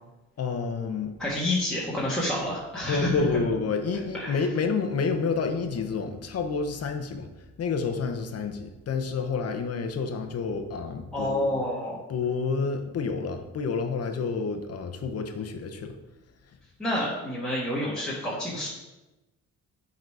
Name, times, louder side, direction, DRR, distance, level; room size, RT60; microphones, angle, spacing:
voice 1, 0.4-1.2 2.9-7.3 7.6-11.5 12.1-15.9, left 5 dB, 55° left, 5 dB, 0.9 m, -29 dB
voice 2, 1.2-3.1 4.1-4.4 11.1-12.0 16.8-18.7, left 1 dB, ahead, -7 dB, 1.6 m, -28 dB
6.5 x 4.2 x 4.8 m, 1.0 s
cardioid pair, 90°, 30 cm